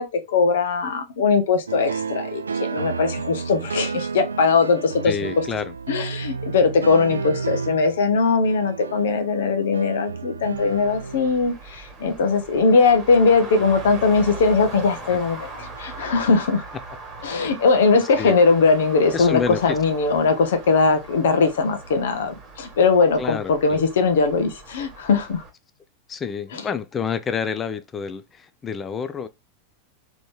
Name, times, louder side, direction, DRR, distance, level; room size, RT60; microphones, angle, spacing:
voice 1, 0.0-5.4 5.9-16.6 17.2-25.4 26.5-26.6, left 4 dB, 60° left, 0.9 m, -20 dB
sound 1, 1.7-11.5, right 4 dB, 75° right, 0.4 m, -31 dB
voice 2, 5.0-5.7 15.1-15.2 18.2-18.4 19.1-19.8 23.2-23.8 26.1-29.3, left 6 dB, 20° left, 0.5 m, -28 dB
Traffic noise roadway noise, 10.5-25.5, right 3 dB, 20° right, 1.7 m, -40 dB
3.8 x 3.1 x 3.5 m
figure-of-eight pair, 90°, 0 cm